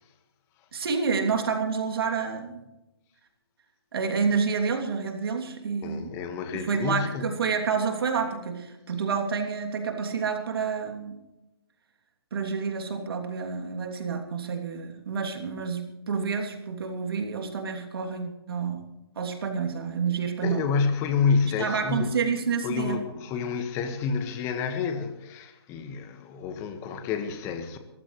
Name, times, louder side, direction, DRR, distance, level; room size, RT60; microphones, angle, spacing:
voice 1, 0.7-2.6 3.9-6.1 6.5-11.2 12.3-18.8 19.2-20.6 21.6-23.0, right 5 dB, 65° right, 3.0 m, -29 dB
voice 2, 5.8-7.3 20.4-22.1 22.6-27.8, left 5 dB, 20° left, 1.6 m, -29 dB
23.0 x 14.5 x 3.2 m
hypercardioid pair, 155°, 13 cm